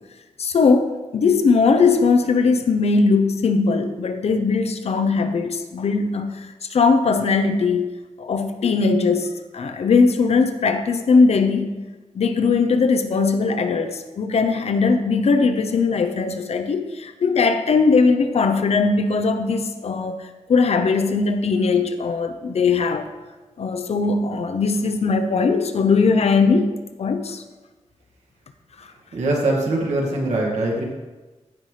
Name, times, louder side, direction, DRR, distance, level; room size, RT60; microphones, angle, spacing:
voice 1, 0.4-7.9 8.2-11.8 12.1-23.1 23.6-26.7 27.0-27.4, left 4 dB, 60° left, 8 dB, 0.7 m, -19 dB
voice 2, 29.1-30.8, right 2 dB, 75° right, -2 dB, 2.1 m, -22 dB
15.5 x 5.6 x 3.3 m, 1.2 s
wide cardioid pair, 140°, 12 cm